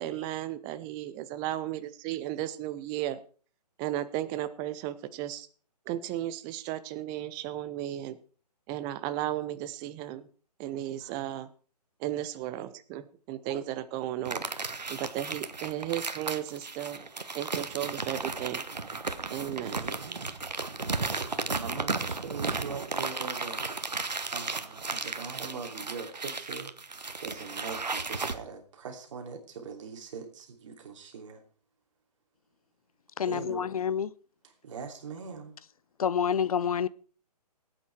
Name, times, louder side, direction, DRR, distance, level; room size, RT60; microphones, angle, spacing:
voice 1, 0.0-3.2 3.8-5.5 5.9-8.2 8.7-10.3 10.6-11.5 12.0-14.4 14.9-17.0 17.3-18.6 19.3-19.8, right 13 dB, 20° right, 0.6 m, -34 dB
sound 1, 14.2-28.3, right 3 dB, 90° right, 1.3 m, -34 dB
voice 2, 19.8-20.4 21.2-23.9 24.3-26.7 27.2-31.4 33.3-33.7 34.6-35.6, right 5 dB, 50° right, 2.9 m, -42 dB
voice 3, 33.2-34.1 36.0-36.9, left 8 dB, 60° left, 0.6 m, -28 dB
18.0 x 8.9 x 4.5 m
figure-of-eight pair, 140°, 21 cm